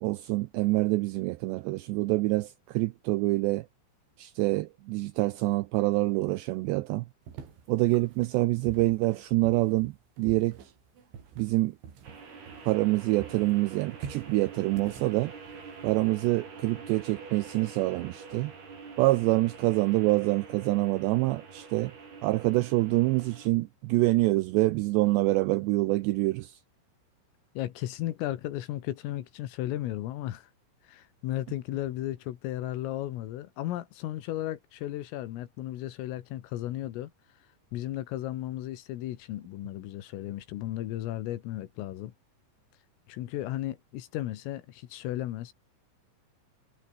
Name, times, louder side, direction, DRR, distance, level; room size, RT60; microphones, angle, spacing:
voice 1, 0.0-3.7 4.2-7.1 7.7-10.7 11.4-11.8 12.7-15.3 15.8-18.5 19.0-21.9 22.2-26.6, right 20 dB, 90° right, 2.4 m, -26 dB
sound 1, 7.3-12.9 13.2-16.1, right 7 dB, 65° right, 6.6 m, -47 dB
sound 2, 12.0-23.5, right 5 dB, 50° right, 8.1 m, -46 dB
voice 2, 27.6-30.5 30.8-37.1 37.7-42.1 43.1-45.5, left 14 dB, 85° left, 4.2 m, -35 dB
omnidirectional pair, 5.8 m